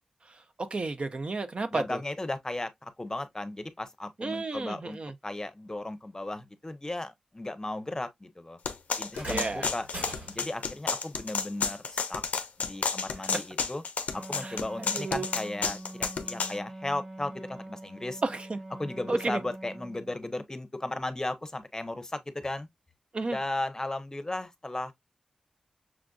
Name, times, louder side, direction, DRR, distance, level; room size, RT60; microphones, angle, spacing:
voice 1, 0.6-2.0 4.2-5.1 9.3-9.7 14.4-15.3 18.2-18.6 19.1-19.4 23.1-23.4, right 3 dB, 50° right, 0.5 m, -32 dB
voice 2, 1.7-5.0 5.2-8.6 9.0-9.9 10.3-12.2 12.6-13.8 14.1-18.2 18.8-22.7 23.3-24.9, left 2 dB, 25° left, 0.7 m, -35 dB
sound 1, 8.7-16.5, left 5 dB, 85° left, 0.5 m, -31 dB
sound 2, 9.1-10.7 12.1-12.3 13.1-13.2, right 1 dB, 85° right, 2.5 m, -42 dB
Wind instrument woodwind instrument, 14.1-20.2, right 1 dB, 20° right, 1.2 m, -44 dB
6.0 x 2.5 x 2.3 m
cardioid pair, 50°, 2 cm